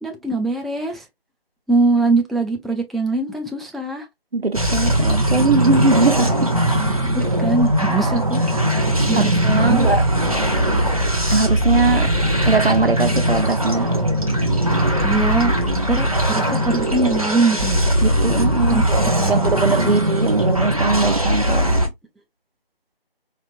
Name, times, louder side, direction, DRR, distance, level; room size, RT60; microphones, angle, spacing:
voice 1, 0.0-1.1 1.7-4.1 6.7-8.4 9.1-9.9 15.0-15.5 15.9-17.8 18.7-19.5, right 3 dB, ahead, 0.4 m, -22 dB
voice 2, 4.3-6.5 9.1-10.0 11.3-12.1 12.5-13.9 18.0-21.7, right 3 dB, 85° right, 0.8 m, -20 dB
sound 1, 4.5-21.9, right 1 dB, 40° right, 0.6 m, -19 dB
4.3 x 2.4 x 2.4 m
figure-of-eight pair, 165°, 29 cm